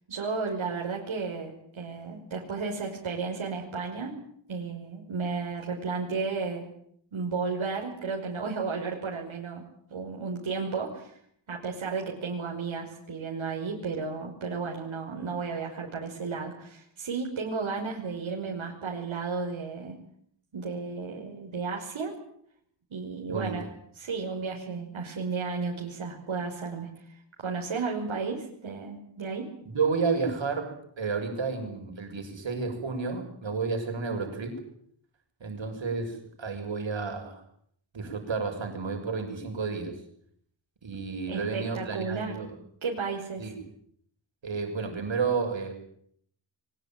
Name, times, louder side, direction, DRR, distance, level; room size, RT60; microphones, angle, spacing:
voice 1, 0.1-4.2 4.5-6.7 7.1-9.6 9.9-11.2 11.5-20.0 20.5-22.1 22.9-23.6 24.0-29.5 41.3-42.4 42.8-43.5, right 4 dB, 90° right, -1 dB, 5.5 m, -33 dB
voice 2, 29.7-34.6 35.4-37.4 37.9-40.0 40.8-42.5 43.4-43.6 44.4-45.7, right 4 dB, 70° right, 4 dB, 6.6 m, -31 dB
23.0 x 20.0 x 9.2 m, 0.67 s
wide cardioid pair, 100°, 46 cm